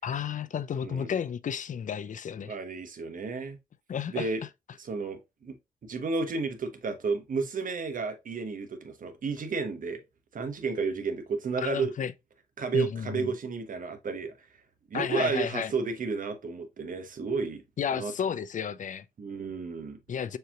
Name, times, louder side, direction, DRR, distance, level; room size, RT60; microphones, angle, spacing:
voice 1, 0.0-2.6 3.9-4.3 11.6-12.1 12.7-13.3 14.9-15.7 17.8-19.1 20.1-20.4, left 7 dB, 60° left, 0.4 m, -32 dB
voice 2, 2.4-3.6 4.1-4.4 4.8-5.6 5.8-10.0 10.3-11.9 12.6-14.3 14.9-17.6 17.9-18.1 19.2-20.0, right 4 dB, 65° right, 0.9 m, -32 dB
6.6 x 2.9 x 2.3 m
cardioid pair, 60°, 15 cm